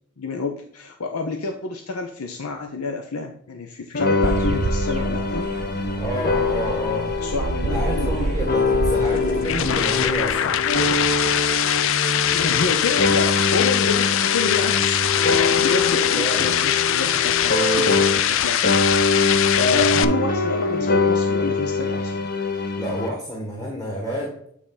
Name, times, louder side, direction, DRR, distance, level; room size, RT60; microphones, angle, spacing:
voice 1, 0.2-5.5 7.2-8.3 9.2-9.6 12.3-18.7 19.6-22.3, left 4 dB, 90° left, 4 dB, 0.7 m, -28 dB
sound 1, 3.9-18.4 18.6-23.1, left 3 dB, 45° left, 0.9 m, -24 dB
sound 2, 4.2-10.3, right 3 dB, 35° right, 0.3 m, -28 dB
voice 2, 6.0-7.1 7.6-10.6 16.1-16.5 22.8-24.5, equal, 15° left, -2 dB, 1.4 m, -29 dB
sound 3, 9.1-20.1, left 11 dB, 60° left, 0.4 m, -22 dB
8.6 x 4.1 x 3.9 m, 0.67 s
head